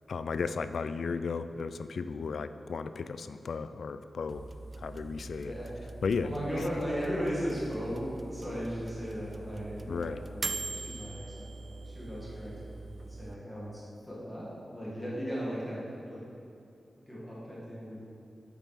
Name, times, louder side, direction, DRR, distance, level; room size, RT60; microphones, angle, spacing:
voice 1, 0.1-4.5 4.8-5.5 6.0-6.3 9.9-10.2, left 5 dB, 70° left, 11 dB, 0.3 m, -34 dB
sound 1, 4.3-13.3, right 2 dB, 30° right, 0.3 m, -42 dB
voice 2, 6.2-12.9 13.2-16.2 17.0-18.0, equal, 5° left, -7 dB, 1.9 m, -37 dB
8.3 x 7.1 x 4.1 m, 2.7 s
wide cardioid pair, 135°, 0 cm